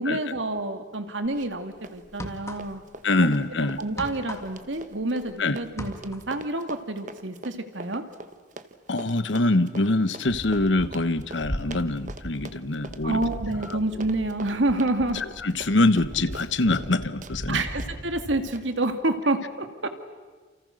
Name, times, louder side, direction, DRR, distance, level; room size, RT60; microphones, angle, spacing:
voice 1, 0.0-2.8 3.8-8.0 13.0-15.2 17.5-19.9, right 2 dB, 80° right, 7 dB, 2.3 m, -28 dB
sound 1, 1.2-1.4 2.0-3.0 3.2-5.4 5.6-6.4, left 1 dB, 15° left, 1.9 m, -39 dB
Run, 1.3-1.6 1.8-16.9 17.2-17.4 17.8-17.9 18.5-18.6, right 2 dB, 40° right, 1.2 m, -43 dB
voice 2, 3.0-3.8 5.4-5.6 8.9-13.2 15.1-17.6, left 2 dB, 80° left, 13 dB, 1.1 m, -24 dB
sound 2, 10.3-18.5, equal, 40° left, 4.0 m, -38 dB
29.5 x 29.0 x 6.5 m, 1.4 s
head